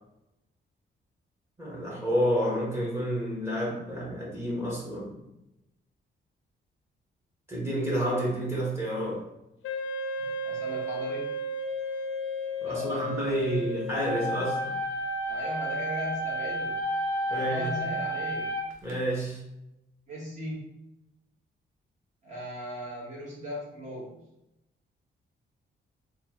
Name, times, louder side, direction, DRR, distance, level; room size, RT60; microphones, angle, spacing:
voice 1, 1.6-5.2 7.5-9.3 12.6-14.7 17.3-17.7 18.8-19.4, equal, 10° right, -6 dB, 1.2 m, -29 dB
Wind instrument woodwind instrument, 9.6-14.7, left 1 dB, 80° left, 0.5 m, -34 dB
voice 2, 10.2-11.3 12.6-13.6 15.3-16.8 17.2-18.5 20.1-20.7 22.2-24.1, equal, 35° right, -4 dB, 1.4 m, -38 dB
sound 1, 13.9-18.9, equal, 85° right, 0.7 m, -31 dB
3.2 x 2.4 x 4.3 m, 0.89 s
wide cardioid pair, 175°, 20 cm